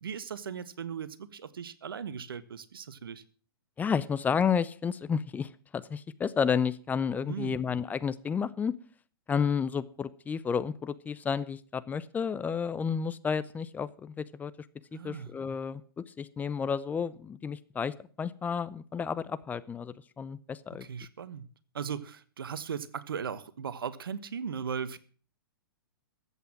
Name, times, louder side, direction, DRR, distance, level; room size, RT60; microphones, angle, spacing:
voice 1, 0.0-3.2 7.3-7.6 14.9-15.3 20.7-21.5 21.7-25.0, right 7 dB, 75° right, 1.2 m, -38 dB
voice 2, 3.8-8.7 9.3-14.5 14.9-20.9, left 6 dB, 15° left, 0.5 m, -31 dB
14.0 x 8.3 x 7.3 m
hypercardioid pair, 120°, 12 cm